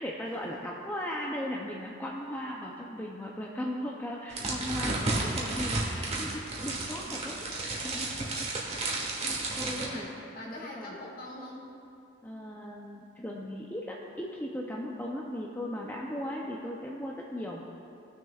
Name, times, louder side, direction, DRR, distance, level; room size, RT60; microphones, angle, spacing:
voice 1, 0.0-7.4 7.8-8.3 8.8-10.1 10.5-11.0 12.2-17.6, equal, 10° left, -3 dB, 0.5 m, -37 dB
sound 1, 4.3-9.9, right 2 dB, 30° right, 1.3 m, -32 dB
voice 2, 7.0-8.3 8.6-11.7, left 1 dB, 45° left, -3 dB, 1.7 m, -45 dB
18.5 x 6.4 x 2.4 m, 2.6 s
head